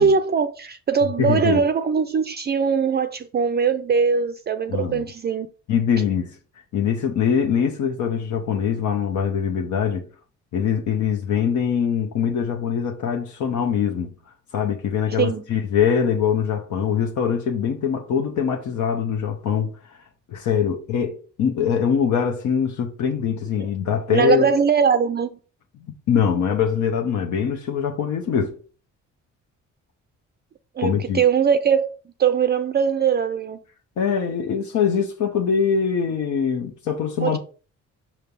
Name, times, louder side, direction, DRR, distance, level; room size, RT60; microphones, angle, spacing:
voice 1, 0.0-5.5 15.2-15.4 24.1-25.4 30.8-33.6 37.2-37.4, right 6 dB, 35° right, 0.4 m, -21 dB
voice 2, 1.2-1.6 4.7-5.1 5.7-6.3 6.7-10.1 10.5-14.1 14.5-19.7 20.3-24.5 26.1-28.6 30.8-31.2 34.0-37.4, left 7 dB, 70° left, 0.9 m, -23 dB
5.8 x 3.2 x 5.3 m
cardioid pair, 90°, 30 cm